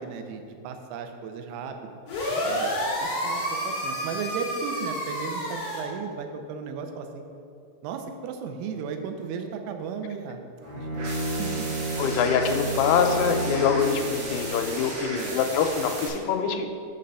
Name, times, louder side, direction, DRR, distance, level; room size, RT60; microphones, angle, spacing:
voice 1, 0.0-2.0 2.4-2.7 3.0-7.1 7.8-10.4 10.7-11.1 11.4-11.7 15.1-15.5, right 6 dB, 85° right, 5 dB, 3.3 m, -35 dB
sound 1, 2.1-5.8, equal, 45° left, 2.1 m, -29 dB
Bowed string instrument, 10.6-14.8, right 2 dB, 35° right, 1.9 m, -31 dB
sound 2, 10.9-16.1, right 2 dB, 65° right, 3.7 m, -36 dB
voice 2, 12.0-16.7, left 7 dB, 85° left, 5 dB, 3.1 m, -24 dB
7.4 x 6.5 x 5.4 m, 2.5 s
omnidirectional pair, 5.9 m